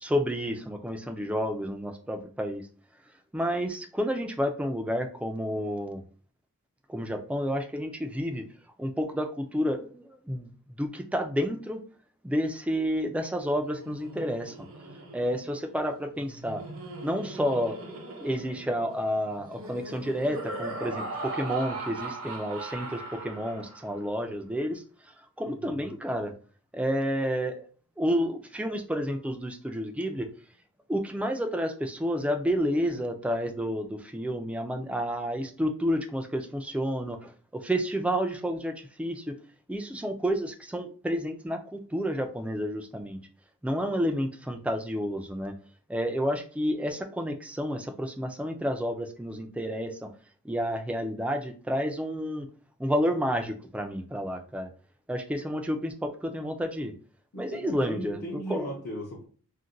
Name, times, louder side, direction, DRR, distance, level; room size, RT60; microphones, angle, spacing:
voice 1, 0.0-2.6 3.3-6.0 6.9-8.5 8.8-10.5 10.8-11.8 12.2-14.5 15.1-16.6 17.0-24.8 25.4-26.3 26.7-27.7 28.0-30.3 30.9-39.3 39.7-43.2 43.6-45.5 45.9-50.1 50.4-52.5 52.8-54.7 55.1-56.9 57.4-58.2 58.5-58.7, equal, 5° right, 5 dB, 0.3 m, -30 dB
Laughter, 13.5-24.0, right 2 dB, 65° right, 0.8 m, -40 dB
voice 2, 25.4-25.9 57.3-59.3, equal, 45° left, -4 dB, 0.6 m, -37 dB
2.5 x 2.1 x 3.9 m, 0.40 s
head